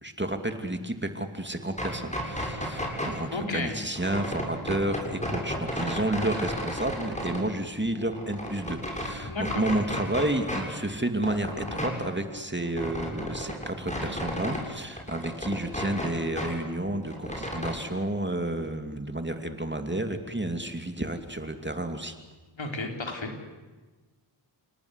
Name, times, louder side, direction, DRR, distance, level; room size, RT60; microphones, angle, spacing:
voice 1, 0.0-22.1, right 1 dB, 20° right, 6 dB, 2.7 m, -31 dB
sound 1, 1.6-3.2 3.9-7.4 7.9-9.1 9.4-10.7 10.9-14.7 14.9-16.5 16.8-17.7, equal, 15° left, 7.5 m, -33 dB
voice 2, 3.3-3.8 9.2-9.7 22.6-23.5, left 2 dB, 65° left, 3 dB, 4.2 m, -32 dB
29.0 x 19.0 x 8.2 m, 1.3 s
cardioid pair, 45°, 50 cm